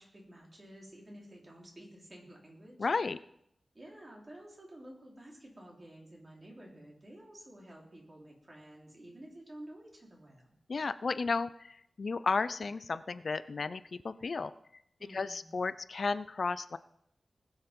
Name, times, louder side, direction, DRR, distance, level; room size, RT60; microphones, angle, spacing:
voice 1, 0.0-2.9 3.7-10.6 15.0-15.5, right 1 dB, 30° right, -2 dB, 3.6 m, -52 dB
voice 2, 2.8-3.2 10.7-14.5 15.1-16.8, left 4 dB, 60° left, 14 dB, 0.4 m, -33 dB
19.5 x 7.2 x 5.3 m, 0.74 s
wide cardioid pair, 125°, 0 cm